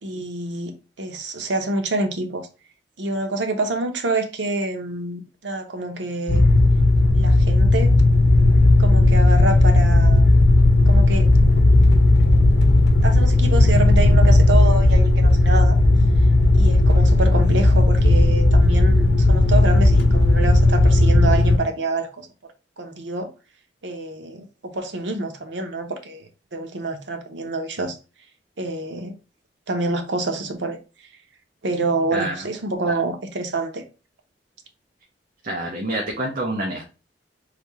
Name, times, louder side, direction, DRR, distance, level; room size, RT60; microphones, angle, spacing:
voice 1, 0.0-2.5 3.0-6.4 7.2-7.9 8.8-10.3 10.9-11.3 13.0-15.8 16.5-22.3 22.8-23.3 23.8-28.0 28.6-29.1 29.7-30.8 31.6-33.8, right 2 dB, 90° right, 0.8 m, -27 dB
sound 1, 6.3-21.6, left 2 dB, 70° left, 0.7 m, -15 dB
voice 2, 35.4-36.8, right 1 dB, 50° right, 0.8 m, -27 dB
3.4 x 2.7 x 4.6 m
head